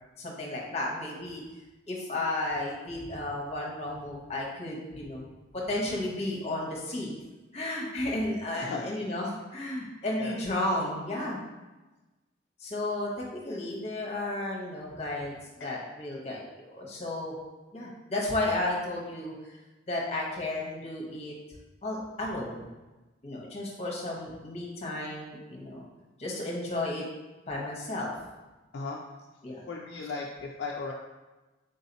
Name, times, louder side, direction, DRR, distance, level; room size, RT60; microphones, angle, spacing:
voice 1, 0.2-1.4 1.9-5.3 5.5-7.1 7.5-11.4 12.6-17.3 17.7-19.6 19.9-21.3 21.8-22.7 23.2-25.8 26.2-27.0 27.5-28.1 29.4-29.6, left 1 dB, 30° left, -3 dB, 0.8 m, -33 dB
voice 2, 8.6-8.9 10.2-10.4 15.6-15.7 28.7-29.0 29.7-30.9, left 4 dB, 55° left, -2 dB, 0.3 m, -36 dB
3.8 x 2.8 x 3.9 m, 1.1 s
head